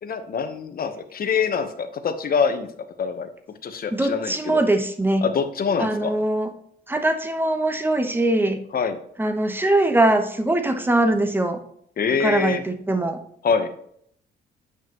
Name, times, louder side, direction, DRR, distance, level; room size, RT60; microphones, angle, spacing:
voice 1, 0.0-2.7 3.0-3.3 3.6-4.6 5.2-6.1 8.7-9.0 12.0-12.6 13.4-13.7, left 6 dB, 50° left, 8 dB, 1.0 m, -24 dB
voice 2, 3.9-5.3 5.8-6.5 6.9-8.6 9.2-11.6 12.2-13.2, right 1 dB, 10° right, 6 dB, 1.0 m, -22 dB
9.2 x 5.7 x 3.0 m, 0.66 s
cardioid pair, 90°, 20 cm